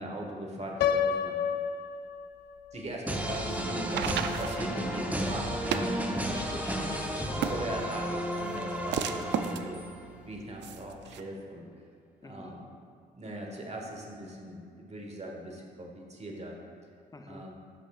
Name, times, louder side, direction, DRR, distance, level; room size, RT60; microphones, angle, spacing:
voice 1, 0.0-1.4 2.7-6.2 7.3-9.8 10.2-11.7 12.2-12.8 13.1-16.5 17.3-17.6, right 1 dB, 35° right, 0 dB, 1.4 m, -40 dB
Piano, 0.8-2.8, left 8 dB, 60° left, 0.4 m, -29 dB
sound 1, 2.9-11.2, right 8 dB, 70° right, 0.4 m, -36 dB
sound 2, 3.1-10.0, equal, 10° right, 0.9 m, -33 dB
voice 2, 6.3-7.6 12.2-12.6 17.1-17.5, left 3 dB, 20° left, 6 dB, 0.6 m, -45 dB
9.0 x 6.2 x 2.4 m, 2.3 s
supercardioid pair, 50°, 19 cm